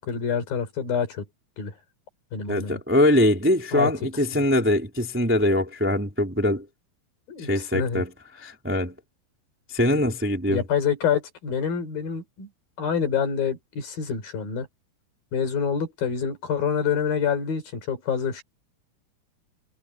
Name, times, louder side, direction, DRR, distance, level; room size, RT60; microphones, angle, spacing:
voice 1, 0.0-1.2 1.6-1.7 2.3-2.8 3.7-3.9 4.3-4.4 7.3-7.5 7.7-8.0 10.5-12.5 12.8-14.7 15.3-18.4, left 7 dB, 55° left, 5.6 m, -26 dB
voice 2, 2.5-6.7 7.4-9.0 9.7-10.6, left 1 dB, 5° right, 2.0 m, -23 dB
omnidirectional pair, 5.0 m